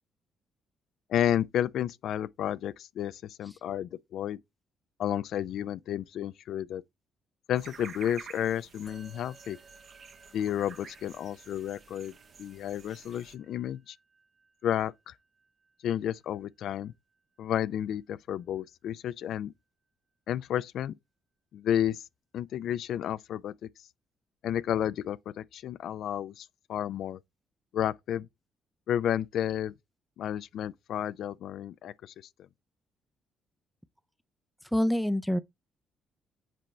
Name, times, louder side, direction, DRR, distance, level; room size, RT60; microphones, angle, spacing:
voice 1, 1.1-4.4 5.0-6.8 7.5-9.6 10.3-12.1 12.4-14.0 14.6-15.1 15.8-16.9 17.4-19.5 20.3-20.9 21.5-22.0 22.3-23.7 24.4-27.2 27.7-28.3 28.9-29.7 30.2-32.1, left 10 dB, 75° left, 0.3 m, -31 dB
sound 1, 7.5-13.4, right 5 dB, 50° right, 1.0 m, -50 dB
Musical instrument, 8.9-18.4, right 4 dB, 35° right, 1.8 m, -61 dB
voice 2, 34.7-35.4, equal, ahead, 0.5 m, -26 dB
7.6 x 4.4 x 3.3 m
cardioid pair, 90°, 0 cm